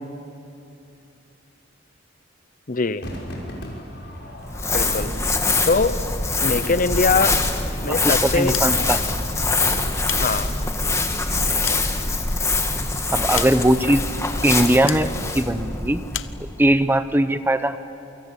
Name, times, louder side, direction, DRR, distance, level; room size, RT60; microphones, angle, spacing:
voice 1, 2.7-3.0 4.7-5.1 5.6-6.0 6.4-7.4 7.8-8.6 10.0-10.5, left 4 dB, 45° left, 13 dB, 0.8 m, -22 dB
Crowd / Fireworks, 3.0-8.4 8.7-8.8, equal, 60° left, 5.8 m, -39 dB
Crumpling crinkling, 4.4-16.9, left 3 dB, 15° left, 1.7 m, -24 dB
voice 2, 8.0-9.0 13.1-14.0 14.4-16.0 16.6-17.8, right 1 dB, 10° right, 11 dB, 0.8 m, -20 dB
sound 1, 8.4-9.1 9.8-10.8 11.3-12.6 13.3-14.0 14.9-15.1 16.1-16.4, left 12 dB, 85° left, 0.8 m, -33 dB
28.5 x 24.5 x 8.4 m, 2.8 s
head